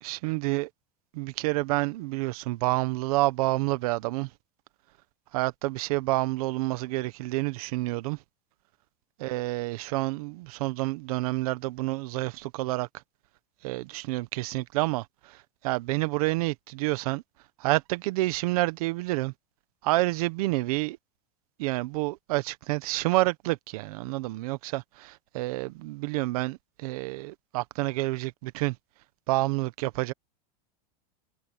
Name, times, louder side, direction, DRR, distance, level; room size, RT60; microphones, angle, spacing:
voice 1, 0.0-0.7 1.1-4.3 5.3-8.2 9.2-12.9 13.6-15.4 15.6-17.2 17.6-19.3 19.8-21.0 21.6-28.8 29.3-30.1, right 20 dB, 65° right, 1.3 m, -28 dB
supercardioid pair, 155°, 20 cm